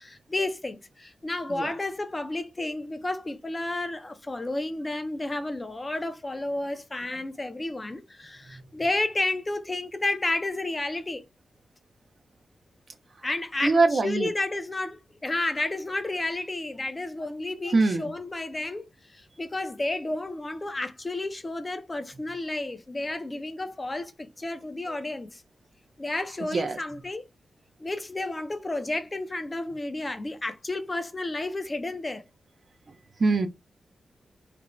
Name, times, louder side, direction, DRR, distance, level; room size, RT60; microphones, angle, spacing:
voice 1, 0.0-11.2 13.2-13.7 14.0-25.4 26.0-27.3 27.8-32.2, left 2 dB, 25° left, 0.4 m, -31 dB
voice 2, 13.6-14.3 17.7-18.1 24.9-25.0 26.4-26.8 32.9-33.5, right 3 dB, 50° right, 0.4 m, -24 dB
2.5 x 2.1 x 2.9 m
cardioid pair, 90°, 0 cm